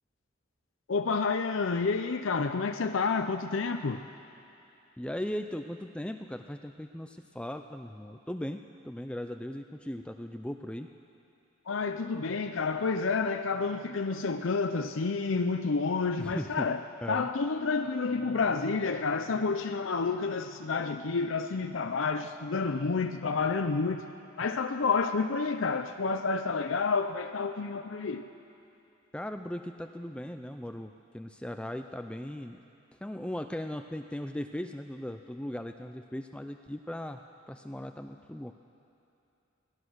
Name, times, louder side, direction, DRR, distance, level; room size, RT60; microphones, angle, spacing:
voice 1, 0.9-4.0 11.7-16.8 17.1-24.0 24.4-28.3, left 4 dB, 80° left, 6 dB, 0.6 m, -29 dB
voice 2, 5.0-10.9 16.2-16.7 17.0-17.3 29.1-32.6 33.0-37.2 37.5-38.5, left 1 dB, 5° left, 6 dB, 0.4 m, -38 dB
24.0 x 17.0 x 6.4 m, 2.7 s
head